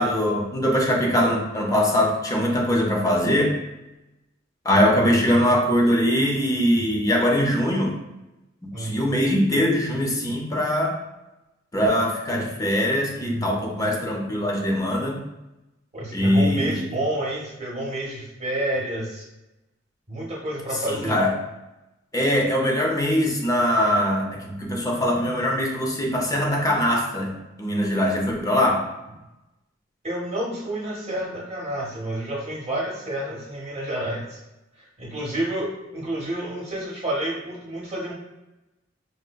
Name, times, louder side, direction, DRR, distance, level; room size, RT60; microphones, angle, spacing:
voice 1, 0.0-3.6 4.6-8.0 8.6-11.0 11.7-15.2 16.1-16.8 20.9-21.3 22.1-27.3 27.6-28.8, equal, 20° left, 0 dB, 0.5 m, -22 dB
voice 2, 8.7-9.0 15.9-19.3 20.1-21.2 30.0-34.4 34.8-38.1, right 1 dB, 35° right, -4 dB, 0.8 m, -29 dB
5.1 x 2.1 x 2.2 m, 0.99 s
head